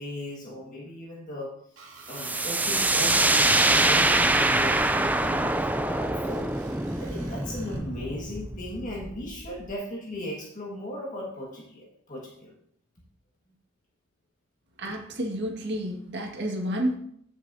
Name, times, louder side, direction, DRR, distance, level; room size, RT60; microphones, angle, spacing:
voice 1, 0.0-1.5 2.1-5.5 5.9-12.5, left 1 dB, 40° left, -3 dB, 1.7 m, -37 dB
Screech, 1.8-2.6 3.7-7.8, right 4 dB, 80° right, 2.3 m, -49 dB
sound 1, 2.1-9.7, right 2 dB, 10° right, 0.3 m, -24 dB
voice 2, 14.8-17.0, equal, 55° right, 1 dB, 1.8 m, -30 dB
15.0 x 6.3 x 2.7 m, 0.68 s
head